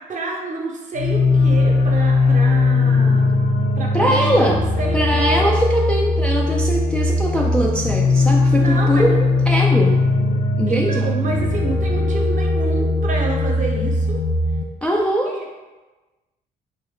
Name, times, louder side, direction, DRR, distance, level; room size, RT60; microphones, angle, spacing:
voice 1, 0.1-3.3 3.8-5.3 8.5-9.2 10.7-14.2 15.3-15.4, right 3 dB, 35° right, -1 dB, 0.8 m, -29 dB
sound 1, 0.9-14.6, left 2 dB, 70° left, 0.5 m, -19 dB
voice 2, 3.9-4.7 4.9-10.0 10.6-11.1 14.8-15.4, equal, 5° left, -2 dB, 0.3 m, -21 dB
2.9 x 2.2 x 3.6 m, 1.2 s
hypercardioid pair, 50°, 21 cm